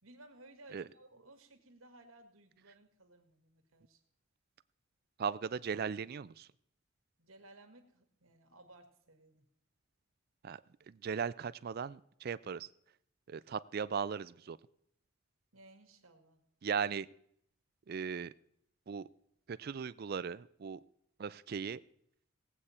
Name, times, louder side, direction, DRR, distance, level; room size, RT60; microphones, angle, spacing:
voice 1, 0.0-4.0 7.2-9.4 15.5-16.4, right 2 dB, 85° right, 5 dB, 1.8 m, -59 dB
voice 2, 5.2-6.5 10.4-10.6 10.9-12.7 13.3-14.6 16.6-17.1 17.9-18.3 18.9-19.1 19.5-20.8 21.2-21.8, right 6 dB, 45° right, 17 dB, 0.3 m, -37 dB
17.5 x 8.2 x 4.3 m, 0.71 s
head